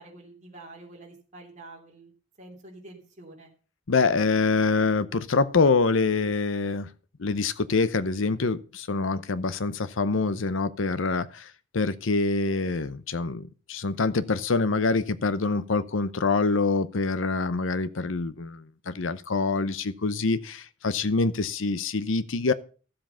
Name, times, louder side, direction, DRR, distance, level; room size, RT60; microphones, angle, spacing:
voice 1, 0.0-2.1 2.4-3.5, right 2 dB, 40° right, 3.2 m, -47 dB
voice 2, 3.9-6.9 7.2-22.5, left 3 dB, 85° left, 0.8 m, -25 dB
13.0 x 7.7 x 5.5 m
head